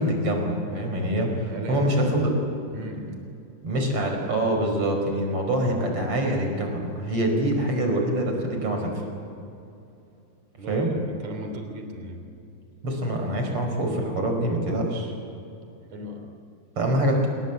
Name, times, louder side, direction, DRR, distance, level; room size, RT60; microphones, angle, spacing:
voice 1, 0.0-2.3 3.6-9.0 10.7-10.9 12.8-15.1 16.8-17.3, right 1 dB, 50° right, 3 dB, 6.0 m, -25 dB
voice 2, 1.5-2.2 2.7-3.2 10.6-12.3 15.9-16.3, right 1 dB, 65° right, 4 dB, 4.6 m, -36 dB
27.0 x 23.0 x 8.3 m, 2.6 s
omnidirectional pair, 3.4 m